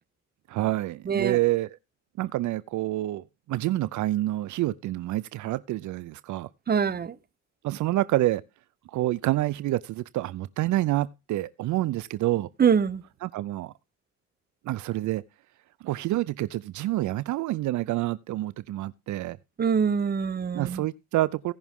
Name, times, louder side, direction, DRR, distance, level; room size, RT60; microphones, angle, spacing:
voice 1, 0.5-1.8 2.2-6.5 7.6-8.4 8.9-12.5 13.2-13.7 14.6-15.2 15.8-19.4 20.5-21.5, right 16 dB, 75° right, 0.5 m, -28 dB
voice 2, 1.1-1.4 6.7-7.1 12.6-13.0 19.6-20.8, right 7 dB, 30° right, 0.8 m, -24 dB
17.0 x 6.0 x 3.6 m
cardioid pair, 90°, 30 cm